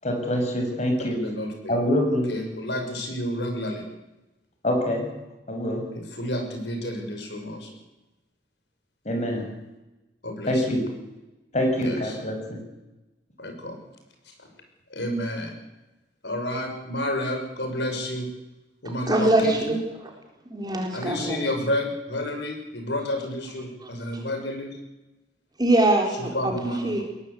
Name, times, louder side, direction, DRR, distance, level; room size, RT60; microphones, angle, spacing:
voice 1, 0.0-1.2 1.7-2.3 4.6-5.1 5.5-5.8 9.1-9.5 10.5-10.8 11.5-12.6, equal, 40° left, 3 dB, 6.8 m, -25 dB
voice 2, 1.1-1.8 2.3-3.8 5.9-7.7 10.2-10.7 11.8-12.2 13.4-13.8 14.4-14.5 14.9-15.6 16.2-18.3 18.8-19.6 20.9-24.8 26.2-27.0, left 1 dB, 70° left, 4 dB, 6.3 m, -30 dB
voice 3, 19.1-20.1 20.5-21.4 23.8-23.9 25.6-26.2 26.4-26.5 26.8-27.0, right 2 dB, 25° right, 1 dB, 3.9 m, -22 dB
21.5 x 18.5 x 8.4 m, 1.0 s
head